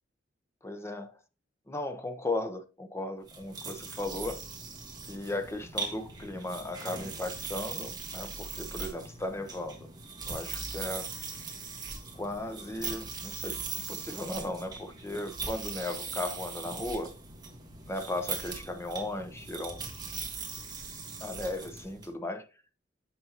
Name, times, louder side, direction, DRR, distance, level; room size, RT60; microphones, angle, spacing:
voice 1, 0.6-1.2 1.7-4.4 5.1-9.9 10.3-11.1 12.1-13.6 13.9-17.1 17.9-19.8 21.2-22.5, left 2 dB, 15° left, 0.7 m, -36 dB
sound 1, 3.2-22.1, right 4 dB, 25° right, 1.4 m, -40 dB
8.0 x 5.5 x 2.9 m
head